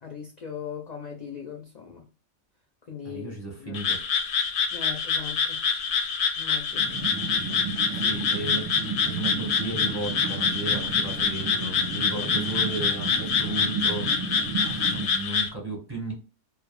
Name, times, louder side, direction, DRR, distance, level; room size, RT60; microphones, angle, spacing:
voice 1, 0.0-2.0 2.9-3.3 3.6-3.8 4.7-5.6 6.4-6.9, left 7 dB, 55° left, 0.5 m, -39 dB
voice 2, 3.0-4.0 7.1-7.2 7.9-14.1 14.6-16.1, right 3 dB, 20° right, 0.9 m, -35 dB
Frog, 3.7-15.5, left 6 dB, 80° left, 0.9 m, -26 dB
sound 1, 6.7-15.0, right 4 dB, 50° right, 0.4 m, -33 dB
2.3 x 2.1 x 3.0 m
omnidirectional pair, 1.3 m